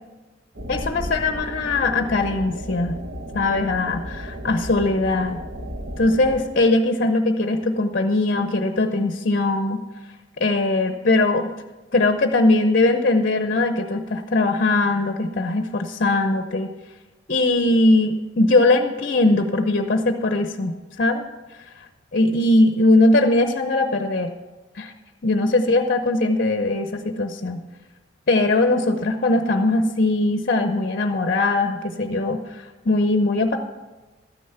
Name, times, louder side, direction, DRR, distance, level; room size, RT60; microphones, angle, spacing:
sound 1, 0.5-6.4, equal, 55° right, 1.0 m, -34 dB
voice 1, 0.7-3.0 3.3-5.4 6.0-9.8 10.4-11.5 11.9-16.7 17.3-21.3 22.1-24.3 24.7-24.9 25.2-27.6 28.3-33.6, left 2 dB, 50° left, 7 dB, 0.7 m, -20 dB
13.0 x 10.0 x 5.7 m, 1.2 s
head